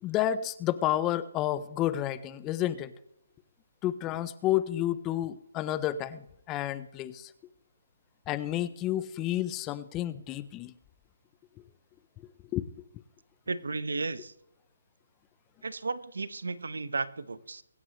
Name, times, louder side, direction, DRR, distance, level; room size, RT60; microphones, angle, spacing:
voice 1, 0.0-2.9 3.8-7.3 8.3-10.7 12.5-12.6, left 12 dB, 15° left, 16 dB, 0.6 m, -30 dB
voice 2, 13.5-14.3 15.6-17.6, right 3 dB, 85° right, 15 dB, 1.1 m, -34 dB
24.0 x 9.6 x 3.1 m, 0.82 s
hypercardioid pair, 160°, 0 cm